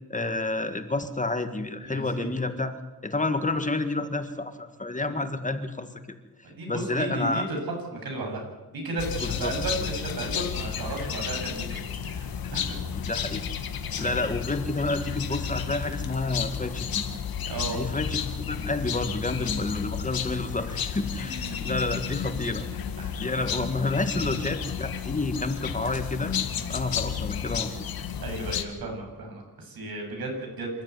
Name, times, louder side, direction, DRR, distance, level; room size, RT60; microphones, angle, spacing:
voice 1, 0.1-5.9 6.7-7.5 9.2-9.5 13.0-13.5 14.0-17.0 17.7-22.6 23.2-26.3 26.7-27.8, left 2 dB, 20° left, 8 dB, 1.9 m, -29 dB
voice 2, 1.8-2.3 6.4-7.6 8.0-8.4 8.7-12.8 14.0-14.1 17.5-17.9 21.2-21.8 23.0-23.3 24.2-24.3 28.2-30.8, right 2 dB, 85° right, 2 dB, 7.9 m, -34 dB
sound 1, 9.0-28.6, left 7 dB, 85° left, 1.9 m, -32 dB
27.0 x 13.0 x 9.6 m, 1.2 s
cardioid pair, 105°, 35 cm